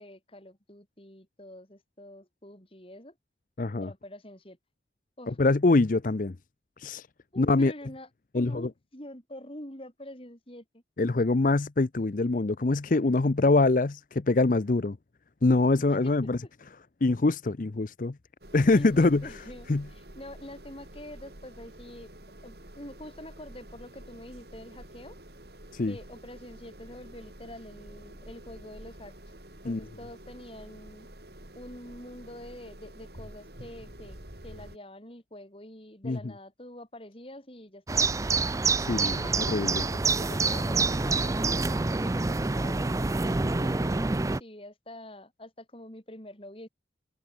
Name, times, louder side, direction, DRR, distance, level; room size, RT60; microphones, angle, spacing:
voice 1, 0.0-3.1 3.8-4.6 5.2-5.4 7.3-8.1 8.3-10.8 16.0-16.5 18.8-22.1 22.4-25.2 25.9-29.1 29.6-31.1 31.6-34.2 34.4-38.3 38.8-39.4 39.9-46.7, left 1 dB, 30° left, 5.4 m, -46 dB
voice 2, 3.6-3.9 5.3-6.4 6.8-7.1 7.4-7.7 8.3-8.7 11.0-15.0 15.4-16.4 17.0-18.2 18.5-19.3 19.7-19.9 25.7-26.0 29.7-29.8 36.0-36.2 38.8-39.9, left 3 dB, 50° left, 0.6 m, -24 dB
sound 1, 18.4-34.8, right 1 dB, 65° right, 5.0 m, -48 dB
sound 2, 37.9-44.4, right 3 dB, 20° right, 0.4 m, -27 dB
head